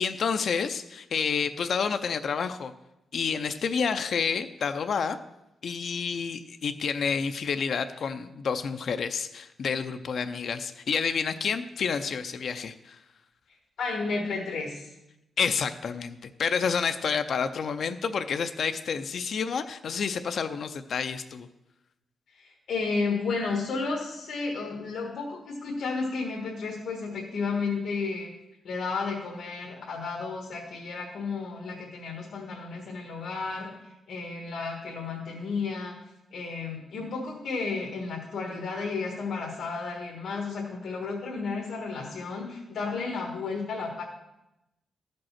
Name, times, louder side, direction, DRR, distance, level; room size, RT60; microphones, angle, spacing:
voice 1, 0.0-2.7 3.1-5.2 5.6-13.0 15.4-21.5, left 6 dB, 50° left, 9 dB, 0.4 m, -29 dB
voice 2, 13.8-14.9 22.3-28.3 28.6-36.0 36.3-44.0, left 4 dB, 75° left, -1 dB, 1.4 m, -32 dB
13.0 x 5.2 x 5.7 m, 0.91 s
wide cardioid pair, 170°, 0 cm